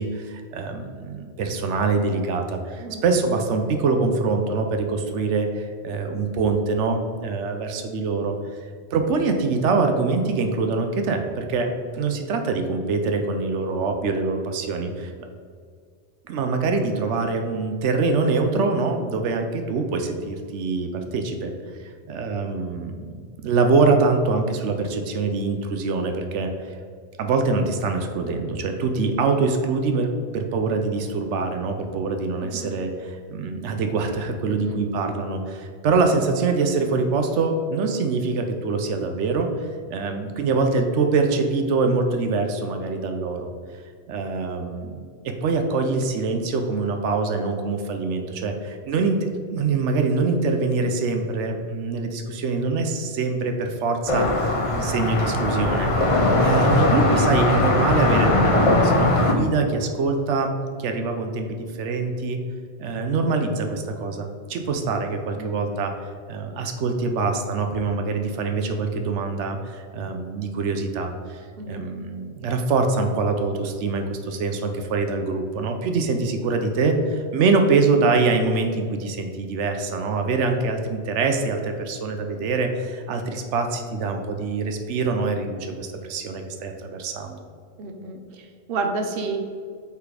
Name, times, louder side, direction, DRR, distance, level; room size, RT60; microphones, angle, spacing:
voice 1, 0.0-8.4 8.9-15.1 16.3-21.5 22.1-22.9 23.4-26.5 27.2-39.5 39.9-43.5 44.1-54.3 54.7-55.9 56.2-60.5 60.8-62.4 62.8-65.9 66.3-87.4, right 4 dB, 85° right, 5 dB, 0.9 m, -24 dB
sound 1, 54.1-59.3, left 2 dB, 35° left, 0.6 m, -20 dB
voice 2, 87.8-89.4, right 3 dB, 60° right, 4 dB, 0.9 m, -31 dB
5.5 x 4.1 x 4.8 m, 2.1 s
omnidirectional pair, 1.2 m